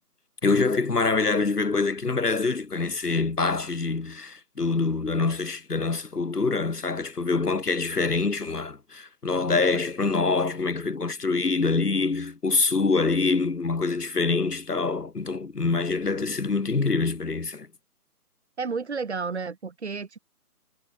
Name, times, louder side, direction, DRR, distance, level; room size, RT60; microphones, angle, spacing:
voice 1, 0.4-17.7, left 4 dB, 80° left, 5.0 m, -25 dB
voice 2, 18.6-20.2, right 5 dB, 45° right, 4.5 m, -31 dB
hypercardioid pair, 175°, 46 cm